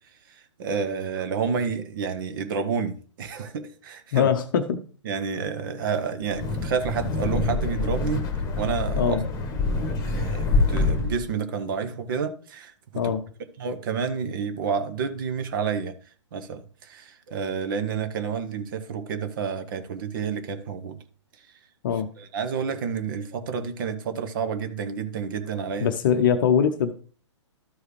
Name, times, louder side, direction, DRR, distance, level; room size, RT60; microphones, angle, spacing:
voice 1, 0.3-4.3 5.0-8.3 8.6-9.1 9.5-12.7 13.0-13.1 13.6-15.9 16.3-21.0 22.2-25.9, right 6 dB, 45° right, 0.9 m, -30 dB
voice 2, 4.1-4.8 9.0-9.3 13.0-13.2 21.8-22.1 25.8-26.9, left 8 dB, 45° left, 0.7 m, -22 dB
Wind, 6.2-11.3, left 3 dB, 20° left, 1.3 m, -26 dB
13.0 x 4.8 x 3.2 m
figure-of-eight pair, 115°, 16 cm